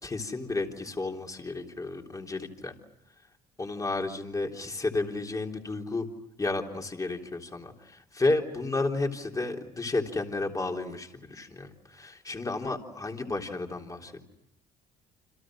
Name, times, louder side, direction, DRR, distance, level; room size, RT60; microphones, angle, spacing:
voice 1, 0.0-2.8 3.6-6.1 6.4-14.2, left 3 dB, 20° left, 2 dB, 3.6 m, -32 dB
29.5 x 26.5 x 6.3 m, 0.82 s
cardioid pair, 110°, 17 cm